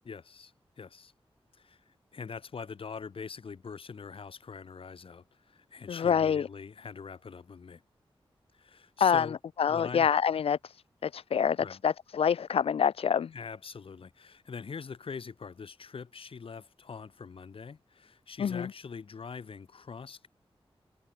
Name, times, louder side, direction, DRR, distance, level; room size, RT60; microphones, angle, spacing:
voice 1, 0.1-1.1 1.5-7.8 8.5-9.4 9.7-10.1 11.6-11.8 13.3-20.3, left 5 dB, 70° left, 2.4 m, -43 dB
voice 2, 5.9-6.5 9.0-9.3 9.6-10.8 11.0-13.3 18.4-18.7, left 7 dB, 90° left, 0.5 m, -26 dB
wide cardioid pair, 120°, 10 cm